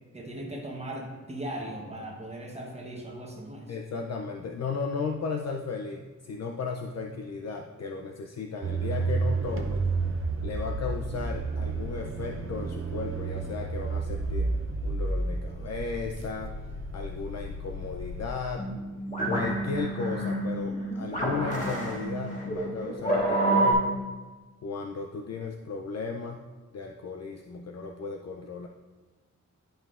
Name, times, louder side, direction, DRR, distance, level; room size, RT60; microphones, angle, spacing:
voice 1, 0.1-3.7, right 1 dB, 20° right, -1 dB, 0.9 m, -38 dB
voice 2, 3.7-9.9 10.4-14.5 14.8-18.7 19.2-24.1 24.6-26.5 26.7-28.7, left 5 dB, 60° left, 2 dB, 0.4 m, -35 dB
sound 1, 8.6-18.3, right 3 dB, 45° right, 0.6 m, -31 dB
sound 2, 18.6-23.7, right 2 dB, 25° left, 1.4 m, -28 dB
11.0 x 5.4 x 2.4 m, 1.3 s
wide cardioid pair, 180°, 30 cm